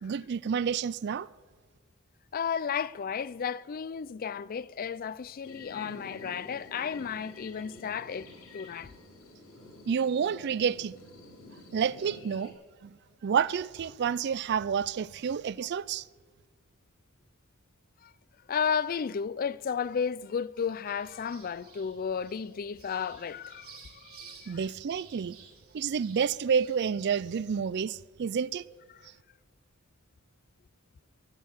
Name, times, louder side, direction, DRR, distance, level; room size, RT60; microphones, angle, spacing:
voice 1, 0.0-1.3 9.9-10.9 11.7-12.5 12.8-13.0 13.2-16.0 24.5-25.4 25.7-28.6, right 7 dB, 50° right, 0.4 m, -29 dB
voice 2, 2.3-8.3 8.5-8.9 18.0-18.1 18.5-24.6 28.9-29.0, left 7 dB, 45° left, 0.4 m, -33 dB
sound 1, 5.4-12.5, left 2 dB, 75° left, 4.1 m, -49 dB
sound 2, 20.9-27.4, right 6 dB, 90° right, 3.3 m, -54 dB
22.0 x 8.5 x 7.2 m
head